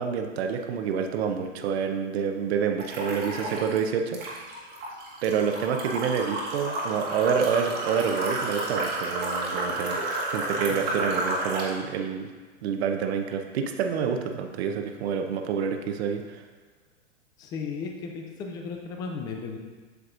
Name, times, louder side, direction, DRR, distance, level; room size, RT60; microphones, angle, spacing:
voice 1, 0.0-4.2 5.2-10.0 10.3-12.3 12.6-16.4, right 6 dB, 55° right, 5 dB, 0.9 m, -28 dB
sound 1, 2.8-3.8 4.1-11.7, right 2 dB, 25° right, 1.5 m, -31 dB
voice 2, 10.7-11.1 17.4-19.6, left 5 dB, 10° left, 2 dB, 0.3 m, -36 dB
8.2 x 6.8 x 2.6 m, 1.4 s
hypercardioid pair, 125°, 38 cm